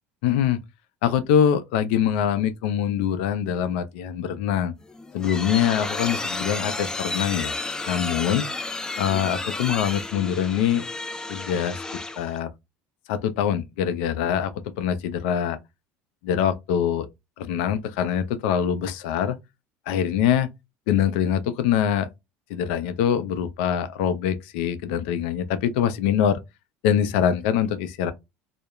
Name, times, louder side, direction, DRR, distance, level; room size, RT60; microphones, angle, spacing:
voice 1, 0.2-0.6 1.0-4.7 5.1-7.6 7.9-8.5 9.0-10.8 11.3-11.8 12.2-12.5 13.1-15.6 16.2-17.1 17.4-19.4 19.9-20.5 20.9-22.1 22.5-26.4 26.8-28.1, left 9 dB, 85° left, 0.4 m, -24 dB
sound 1, 4.8-12.4, left 3 dB, 10° left, 0.3 m, -32 dB
2.3 x 2.0 x 2.9 m
supercardioid pair, 100°, 6 cm